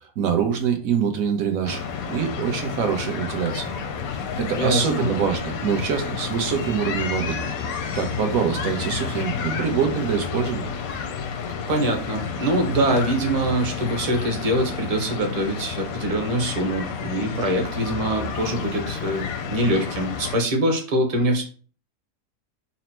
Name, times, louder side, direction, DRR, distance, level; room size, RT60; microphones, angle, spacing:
voice 1, 0.2-3.7 4.4-7.4 7.9-10.7, right 7 dB, 75° right, 5 dB, 1.2 m, -25 dB
sound 1, 1.6-20.4, left 6 dB, 85° left, 1.1 m, -30 dB
voice 2, 4.5-5.1 11.7-21.4, right 1 dB, 35° right, 2 dB, 0.7 m, -24 dB
4.2 x 2.0 x 4.2 m, 0.41 s
omnidirectional pair, 1.5 m